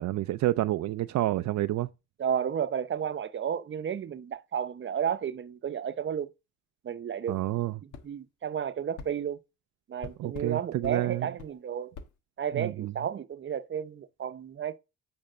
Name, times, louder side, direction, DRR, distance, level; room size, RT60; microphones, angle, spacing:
voice 1, 0.0-1.9 7.3-7.8 10.2-11.3 12.5-12.9, right 15 dB, 70° right, 0.5 m, -29 dB
voice 2, 2.2-6.3 6.8-7.4 7.8-9.4 9.9-11.9 12.4-14.8, right 8 dB, 40° right, 0.8 m, -32 dB
sound 1, 7.9-8.1 9.0-9.1 10.0-10.5 10.8-11.0 11.4-11.5 11.9-12.1, left 5 dB, 85° left, 1.3 m, -43 dB
8.8 x 3.5 x 6.3 m
cardioid pair, 90°, 30 cm